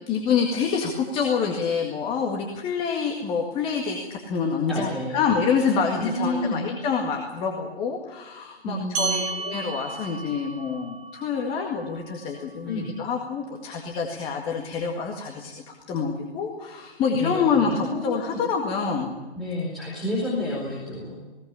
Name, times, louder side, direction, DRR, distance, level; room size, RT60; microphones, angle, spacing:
voice 1, 0.1-15.5 15.9-19.1, left 6 dB, 15° left, 1 dB, 2.0 m, -27 dB
voice 2, 4.7-5.3 6.0-6.6 8.6-9.3 12.6-12.9 17.1-18.4 19.4-21.1, left 1 dB, ahead, -8 dB, 4.6 m, -30 dB
sound 1, 8.9-13.8, right 4 dB, 20° right, 3.8 m, -35 dB
20.5 x 18.5 x 8.6 m, 1.2 s
figure-of-eight pair, 140°, 33 cm